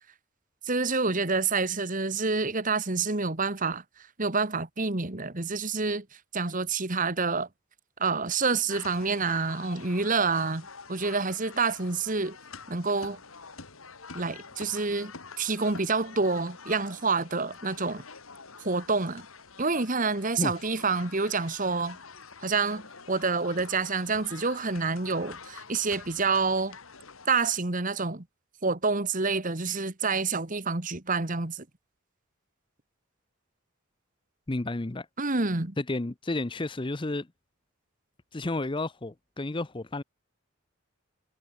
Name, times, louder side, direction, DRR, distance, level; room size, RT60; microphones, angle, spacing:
voice 1, 0.6-3.8 4.2-6.0 6.3-7.5 8.0-12.4 12.7-13.2 14.1-18.0 18.6-19.3 19.6-22.0 22.4-26.8 27.3-28.2 28.6-31.6 35.2-35.7, right 4 dB, 40° right, 1.7 m, -28 dB
sound 1, 8.7-27.3, left 5 dB, 80° left, 3.1 m, -47 dB
voice 2, 34.5-35.1 35.8-37.3 38.3-40.0, left 2 dB, 25° left, 0.6 m, -31 dB
head